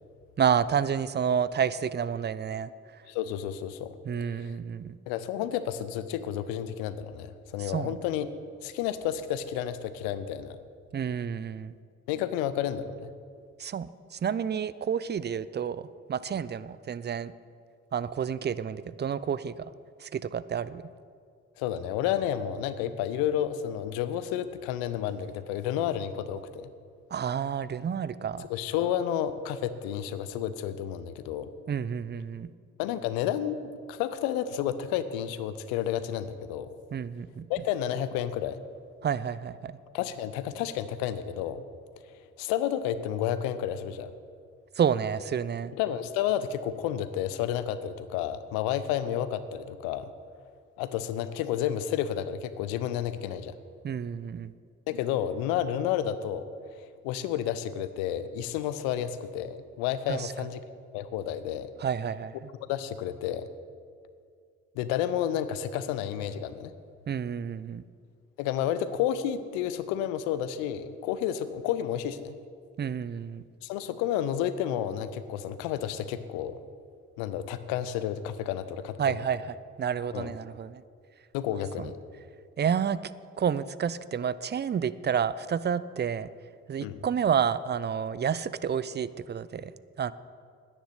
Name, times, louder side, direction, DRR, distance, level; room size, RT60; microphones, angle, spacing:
voice 1, 0.4-2.7 4.1-5.0 7.6-7.9 10.9-11.7 13.6-17.3 17.9-19.5 20.0-20.8 27.1-28.5 31.7-32.5 36.9-37.5 39.0-39.7 44.8-45.7 53.8-54.5 60.1-60.3 61.8-62.3 67.1-67.8 72.8-73.4 79.0-80.8 81.8-81.9 82.6-83.0 83.4-86.3 86.7-89.7 90.0-90.1, right 7 dB, 30° right, 17 dB, 0.6 m, -29 dB
voice 2, 3.1-3.9 4.2-4.5 5.1-8.3 8.6-10.6 12.1-13.1 21.6-26.7 28.5-31.5 32.8-36.7 37.5-38.6 39.9-41.6 42.4-44.1 45.7-50.1 50.8-53.5 54.9-56.4 57.0-60.6 60.9-61.7 62.7-63.5 64.8-66.7 68.4-72.3 73.6-76.6 77.2-79.2 80.1-80.4 81.3-82.0 86.8-87.0, left 10 dB, 75° left, 13 dB, 0.8 m, -31 dB
10.0 x 10.0 x 8.0 m, 2.2 s
hypercardioid pair, 40°, 36 cm